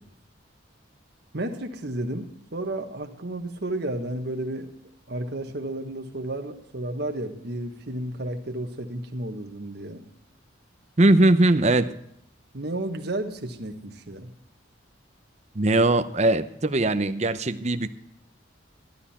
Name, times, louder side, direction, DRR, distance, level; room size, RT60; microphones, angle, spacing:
voice 1, 1.3-4.7 5.1-10.0 12.5-14.3, right 1 dB, 55° right, 4 dB, 1.4 m, -32 dB
voice 2, 11.0-12.0 15.5-17.9, right 2 dB, 35° right, 9 dB, 0.7 m, -20 dB
13.5 x 12.5 x 4.3 m, 0.75 s
head